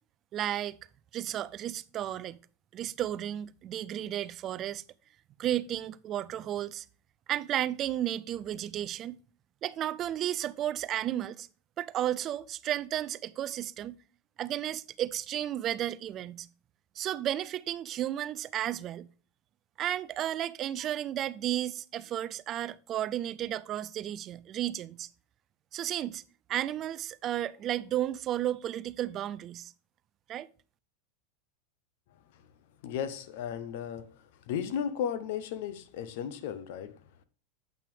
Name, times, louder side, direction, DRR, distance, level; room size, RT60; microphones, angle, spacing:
voice 1, 0.3-0.8 1.1-2.4 2.7-4.8 5.4-6.9 7.3-9.2 9.6-11.5 11.8-14.0 14.4-16.5 17.0-19.1 19.8-25.1 25.7-26.2 26.5-29.7 30.3-30.5, right 12 dB, 30° right, 0.4 m, -33 dB
voice 2, 32.8-37.0, left 8 dB, 60° left, 0.8 m, -35 dB
8.4 x 6.0 x 3.4 m
supercardioid pair, 155°, 0 cm